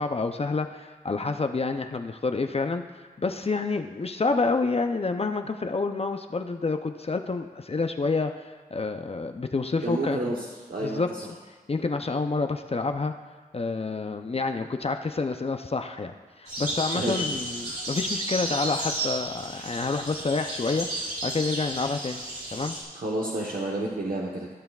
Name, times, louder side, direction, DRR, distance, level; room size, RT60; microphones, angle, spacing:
voice 1, 0.0-10.3 10.8-11.1 11.7-13.1 13.5-22.2 22.5-22.8, left 3 dB, 40° left, 6 dB, 0.5 m, -28 dB
voice 2, 9.8-11.2 16.9-17.2 22.9-24.5, right 2 dB, 65° right, -3 dB, 1.1 m, -30 dB
sound 1, 16.5-22.8, right 1 dB, 80° right, 2.9 m, -33 dB
16.0 x 6.7 x 2.4 m, 1.4 s
cardioid pair, 45°, 16 cm